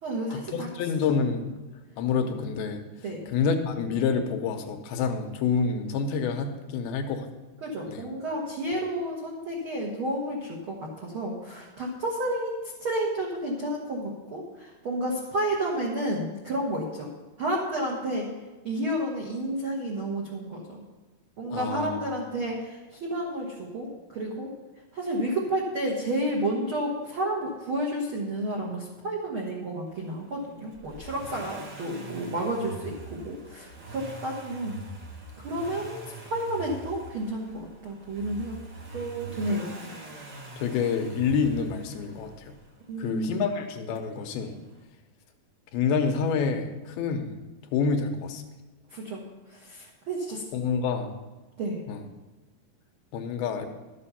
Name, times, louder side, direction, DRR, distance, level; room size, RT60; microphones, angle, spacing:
voice 1, 0.0-0.7 3.0-3.2 7.6-17.1 17.4-18.3 18.6-20.8 21.4-24.5 24.9-34.8 35.4-38.6 38.9-39.7 42.9-43.5 48.9-49.2 49.5-50.4 51.6-51.8, right 1 dB, 80° right, -2 dB, 1.2 m, -31 dB
voice 2, 0.5-1.5 2.0-2.8 3.3-7.3 7.9-8.1 21.5-22.0 40.6-42.5 43.0-44.6 45.7-47.4 47.7-48.4 50.5-51.2 51.9-52.0 53.1-53.7, left 5 dB, 80° left, 5 dB, 2.7 m, -27 dB
Accelerating revving vroom, 30.7-42.6 43.9-44.0, right 2 dB, 60° right, 1.5 m, -43 dB
12.5 x 7.6 x 5.6 m, 1.2 s
omnidirectional pair, 4.6 m